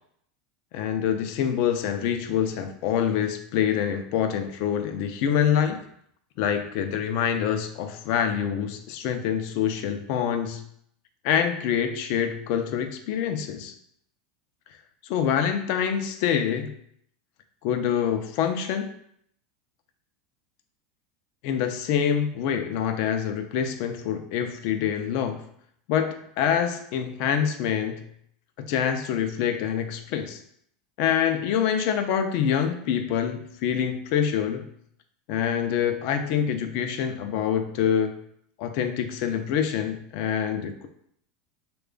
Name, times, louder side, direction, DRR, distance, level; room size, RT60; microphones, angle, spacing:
voice 1, 0.7-5.8 6.4-10.6 11.2-13.7 15.0-16.7 17.6-18.9 21.4-25.4 25.9-28.0 28.6-30.4 31.0-34.6 35.3-38.2 38.6-40.9, left 8 dB, 60° left, 8 dB, 0.4 m, -26 dB
3.1 x 2.2 x 3.7 m, 0.68 s
supercardioid pair, 125°, 0 cm